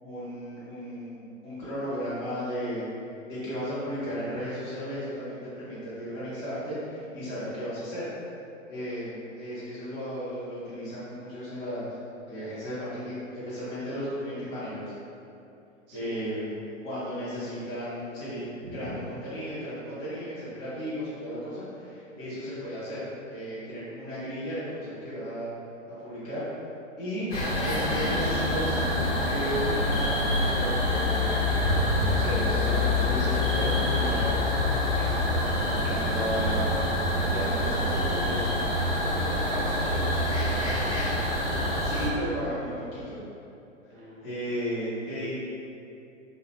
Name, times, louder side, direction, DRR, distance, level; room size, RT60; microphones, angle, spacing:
voice 1, 0.0-2.9 3.3-8.1 8.7-11.9 12.3-14.9 15.9-25.5 26.0-26.4 27.0-27.3 27.6-28.8 29.2-31.4 31.7-34.4 34.9-35.3 35.7-36.6 37.3-38.4 41.8-43.2 43.8-43.9 44.2-45.3, equal, 20° left, -11 dB, 0.5 m, -34 dB
voice 2, 15.9-16.3 18.8-19.0 39.0-41.0 43.9-44.4, right 1 dB, 50° right, -4 dB, 0.7 m, -41 dB
sound 1, 27.3-42.1, left 1 dB, 65° left, 1.0 m, -26 dB
2.5 x 2.1 x 2.8 m, 2.7 s
hypercardioid pair, 140°, 39 cm